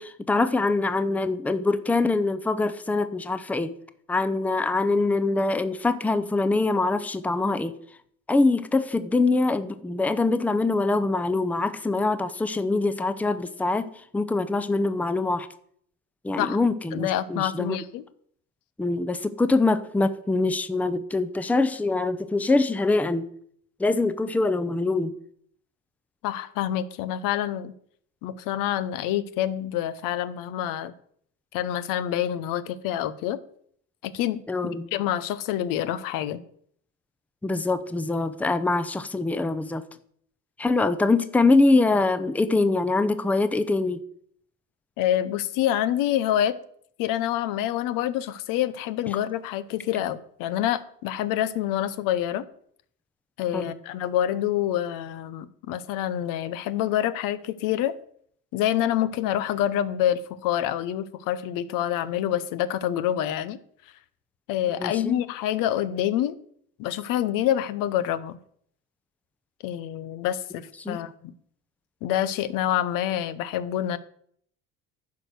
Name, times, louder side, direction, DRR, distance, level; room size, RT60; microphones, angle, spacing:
voice 1, 0.0-3.7 4.1-7.7 8.3-13.9 14.1-15.5 16.2-17.8 18.8-23.2 23.8-25.1 34.5-34.9 37.4-39.8 40.6-44.0 53.5-53.7 64.8-65.2 70.8-71.0, left 3 dB, 5° left, 12 dB, 0.5 m, -24 dB
voice 2, 16.9-18.0 26.2-27.7 28.2-30.9 31.5-33.4 34.0-36.4 45.0-46.6 47.0-52.4 53.4-57.9 58.5-63.6 64.5-66.4 66.8-68.4 69.6-71.3 72.0-74.0, left 11 dB, 75° left, 15 dB, 0.7 m, -27 dB
10.5 x 4.8 x 6.7 m, 0.65 s
supercardioid pair, 105°, 33 cm